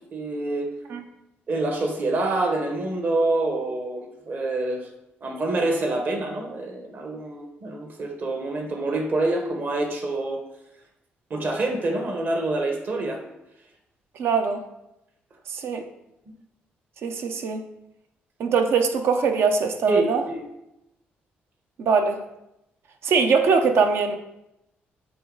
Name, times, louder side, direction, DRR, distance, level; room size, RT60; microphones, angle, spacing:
voice 1, 0.1-0.7 1.5-4.9 5.2-10.4 11.3-13.2 19.9-20.5, right 2 dB, 50° right, 3 dB, 1.2 m, -26 dB
voice 2, 14.2-14.6 15.5-15.8 17.0-17.6 18.4-20.2 21.8-22.2 23.0-24.2, right 5 dB, 70° right, 6 dB, 0.7 m, -22 dB
8.2 x 3.0 x 3.9 m, 0.86 s
cardioid pair, 70°, 4 cm